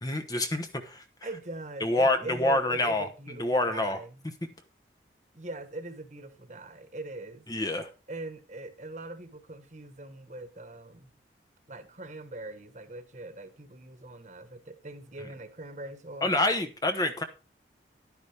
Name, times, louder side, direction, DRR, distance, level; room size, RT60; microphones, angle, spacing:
voice 1, 0.0-1.0 1.8-3.1 3.4-4.0 7.5-7.9 16.2-17.2, left 2 dB, 20° left, 0.9 m, -27 dB
voice 2, 1.2-4.3 5.3-7.4 8.1-11.1 11.7-16.3, right 2 dB, 40° right, 1.4 m, -42 dB
11.0 x 9.6 x 3.4 m
head